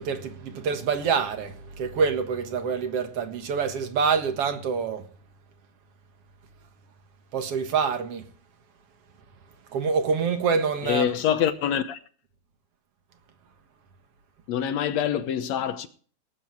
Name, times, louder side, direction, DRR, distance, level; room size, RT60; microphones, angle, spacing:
voice 1, 0.0-5.0 7.3-8.3 9.7-11.1, right 5 dB, 50° right, 2.2 m, -26 dB
voice 2, 10.8-12.0 14.5-15.9, left 9 dB, 65° left, 1.8 m, -25 dB
19.0 x 9.5 x 4.6 m
omnidirectional pair, 4.0 m